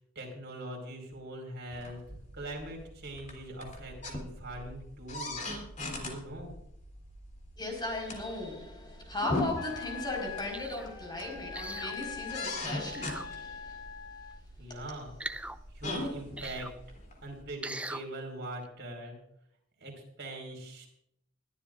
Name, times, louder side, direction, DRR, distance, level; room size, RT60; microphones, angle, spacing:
voice 1, 0.1-5.5 5.9-6.5 14.6-15.2 15.7-16.7 17.2-19.2 19.8-20.9, right 1 dB, 55° right, 4.8 m, -42 dB
sound 1, 1.7-17.4, left 1 dB, 40° left, 3.2 m, -41 dB
voice 2, 7.6-13.8 14.7-14.8, left 2 dB, 20° left, 4.7 m, -37 dB
Wind instrument woodwind instrument, 9.5-14.4, left 7 dB, 85° left, 1.2 m, -43 dB
sound 2, 10.5-10.9 11.5-12.0 12.9-13.3 15.2-15.6 16.4-16.7 17.6-18.0 18.6-18.7, right 2 dB, 5° right, 0.4 m, -40 dB
22.0 x 13.0 x 2.5 m
head